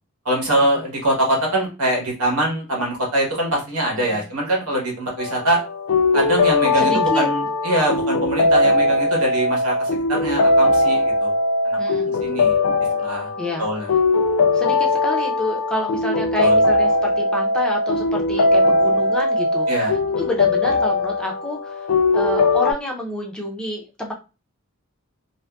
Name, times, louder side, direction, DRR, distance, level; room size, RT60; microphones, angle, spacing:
voice 1, 0.2-5.6 6.1-11.3 11.6-12.0 12.2-12.6 13.0-13.3 13.6-13.9 16.4-16.6 19.7-19.9, right 1 dB, 80° right, -1 dB, 1.2 m, -23 dB
sound 1, 5.2-22.7, left 2 dB, 75° left, 0.4 m, -20 dB
voice 2, 6.8-7.3 11.8-12.1 13.4-13.7 14.5-21.9 22.1-24.1, left 1 dB, 5° left, 0 dB, 0.4 m, -28 dB
2.6 x 2.5 x 2.2 m, 0.30 s
head